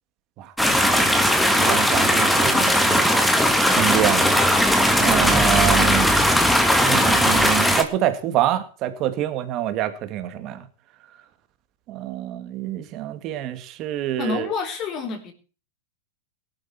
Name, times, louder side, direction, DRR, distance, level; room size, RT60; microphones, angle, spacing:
sound 1, 0.6-7.8, equal, 5° left, 2.0 m, -18 dB
voice 1, 1.6-3.2 3.7-4.4 5.0-6.1 6.8-10.6 11.9-14.4, right 12 dB, 35° right, 9 dB, 2.4 m, -26 dB
voice 2, 14.2-15.3, left 4 dB, 30° left, 5 dB, 3.9 m, -28 dB
17.5 x 12.0 x 4.5 m, 0.37 s
hypercardioid pair, 140°, 0 cm